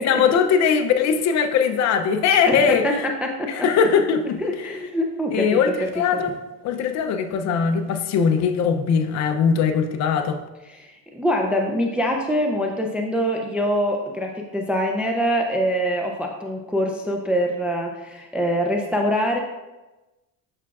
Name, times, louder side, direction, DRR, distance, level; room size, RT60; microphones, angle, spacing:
voice 1, 0.0-3.1 3.5-4.7 5.3-6.4 6.6-10.4, left 6 dB, 45° left, 6 dB, 0.6 m, -20 dB
voice 2, 2.4-2.9 3.2-3.5 4.4-6.2 10.7-19.4, equal, 5° right, 1 dB, 0.4 m, -24 dB
8.2 x 5.7 x 2.4 m, 1.1 s
cardioid pair, 130°, 39 cm